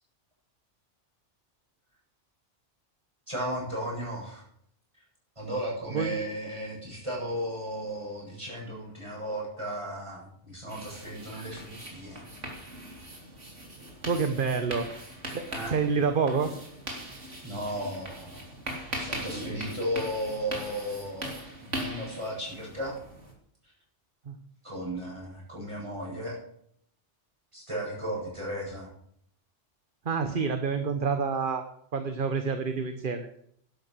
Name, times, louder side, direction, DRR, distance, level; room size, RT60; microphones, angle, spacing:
voice 1, 3.3-4.4 5.4-12.3 15.5-15.7 17.4-18.5 18.9-23.0 24.6-26.4 27.5-28.9, equal, 25° right, -4 dB, 8.0 m, -35 dB
sound 1, 10.7-23.3, right 1 dB, 90° right, 3.9 m, -40 dB
voice 2, 14.1-14.9 15.3-16.5 24.3-24.4 30.0-31.6 31.9-33.3, right 5 dB, 50° right, 8 dB, 1.2 m, -28 dB
12.0 x 11.5 x 6.7 m, 0.67 s
omnidirectional pair, 1.2 m